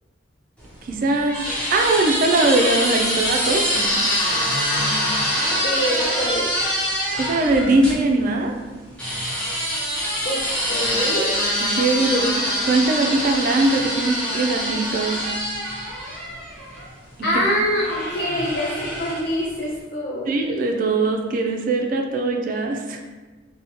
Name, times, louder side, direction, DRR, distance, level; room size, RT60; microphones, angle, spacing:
sound 1, 0.6-8.0 9.0-16.9 17.8-19.4, equal, 5° left, 0.6 m, -24 dB
voice 1, 0.8-1.4 1.7-4.1 7.2-8.6 11.6-12.2 12.7-15.2 17.3-17.4 20.2-23.0, right 2 dB, 45° right, 3 dB, 0.3 m, -21 dB
voice 2, 5.6-6.4 10.2-11.3 12.0-12.3 17.2-20.3, equal, 55° left, -5 dB, 0.4 m, -25 dB
2.7 x 2.1 x 2.8 m, 1.3 s
head